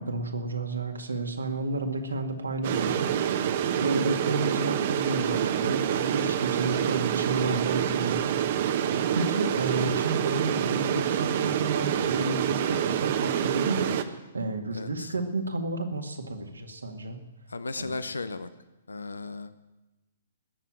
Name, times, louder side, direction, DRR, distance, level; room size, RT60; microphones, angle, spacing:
voice 1, 0.0-3.1 3.4-8.4 8.9-17.2 17.8-18.0, right 2 dB, 85° right, 3 dB, 2.0 m, -31 dB
sound 1, 2.6-14.0, right 9 dB, 50° right, 1.0 m, -27 dB
voice 2, 14.7-15.1 17.5-18.5 18.9-19.5, left 3 dB, 80° left, 13 dB, 0.7 m, -35 dB
19.0 x 7.3 x 8.7 m, 1.0 s
figure-of-eight pair, 120°, 0 cm